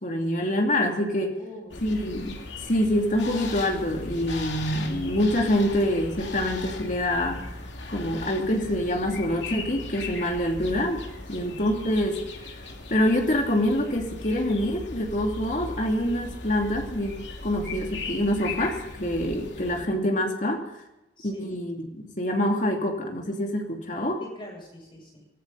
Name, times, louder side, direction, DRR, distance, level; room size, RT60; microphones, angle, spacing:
voice 1, 0.0-1.3 1.8-7.4 7.9-11.0 11.3-12.2 12.9-17.1 17.4-20.6 21.2-24.2, left 1 dB, 45° left, 2 dB, 2.7 m, -26 dB
voice 2, 1.2-1.8 11.3-11.6 21.2-21.6 24.2-25.2, equal, 30° left, -1 dB, 7.8 m, -44 dB
sound 1, 1.7-19.9, left 3 dB, 85° left, 2.5 m, -38 dB
25.0 x 13.5 x 4.1 m, 0.91 s
head